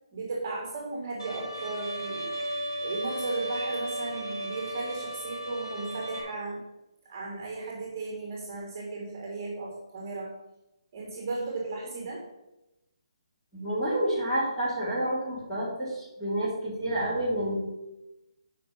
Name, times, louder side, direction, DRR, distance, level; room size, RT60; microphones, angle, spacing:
voice 1, 0.1-2.5 2.8-6.6 7.1-10.3 10.9-12.3, right 3 dB, 30° right, -1 dB, 1.8 m, -35 dB
Bowed string instrument, 1.2-6.2, right 1 dB, 80° left, 2.9 m, -35 dB
voice 2, 13.5-17.6, right 1 dB, 5° left, -11 dB, 2.5 m, -29 dB
6.5 x 5.2 x 5.6 m, 0.95 s
hypercardioid pair, 170°, 3 cm